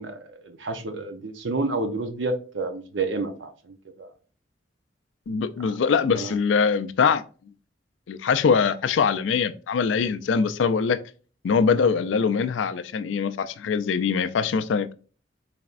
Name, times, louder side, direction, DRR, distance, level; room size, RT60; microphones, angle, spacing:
voice 1, 0.0-4.1 5.6-5.7 6.1-6.4, right 3 dB, 80° right, 0.7 m, -30 dB
voice 2, 5.3-7.2 8.1-11.0 11.4-14.9, left 5 dB, 85° left, 0.4 m, -23 dB
4.0 x 3.4 x 2.4 m
head